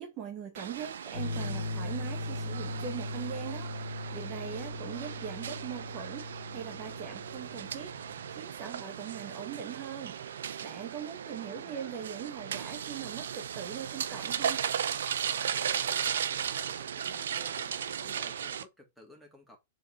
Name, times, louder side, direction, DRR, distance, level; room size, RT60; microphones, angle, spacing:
voice 1, 0.0-14.6, right 8 dB, 35° right, 1.2 m, -41 dB
sound 1, 0.6-18.6, right 8 dB, 90° right, 0.6 m, -36 dB
sound 2, 1.1-8.4, left 2 dB, 65° left, 1.7 m, -39 dB
voice 2, 4.6-5.2 11.3-12.0 15.8-19.6, equal, ahead, 2.2 m, -54 dB
4.7 x 4.0 x 5.4 m
hypercardioid pair, 140°, 0 cm